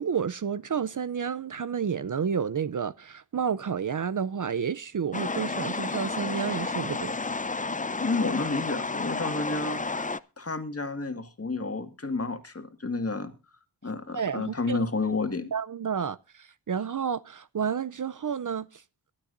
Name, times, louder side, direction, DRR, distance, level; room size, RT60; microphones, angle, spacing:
voice 1, 0.0-7.1 14.1-14.8 15.5-18.8, right 7 dB, 50° right, 0.6 m, -30 dB
sound 1, 5.1-10.2, left 3 dB, 20° left, 0.6 m, -31 dB
voice 2, 8.0-10.1 10.4-13.3 13.8-15.5, left 3 dB, 35° left, 1.9 m, -30 dB
22.5 x 12.0 x 2.6 m
wide cardioid pair, 65°, 40 cm